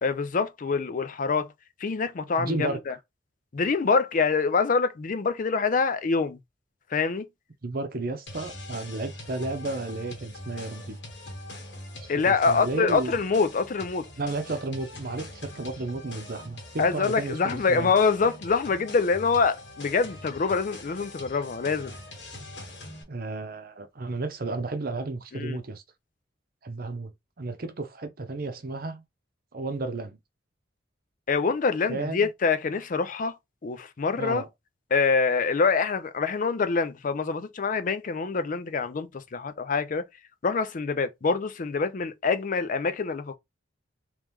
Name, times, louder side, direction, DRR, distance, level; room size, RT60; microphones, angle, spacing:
voice 1, 0.0-1.5 1.8-2.9 3.5-6.4 6.9-7.3 12.1-14.1 16.8-21.9 25.3-25.6 31.3-33.3 33.6-34.4 34.9-40.1 40.4-43.4, left 4 dB, 45° left, 0.4 m, -25 dB
voice 2, 2.4-2.8 7.6-11.0 12.0-13.1 14.2-17.9 23.1-25.8 26.6-27.1 27.4-29.0 29.5-30.2 31.9-32.3 34.2-34.5, right 2 dB, 50° right, 0.8 m, -33 dB
sound 1, 8.3-23.0, left 1 dB, 80° left, 1.4 m, -43 dB
3.2 x 3.0 x 3.4 m
head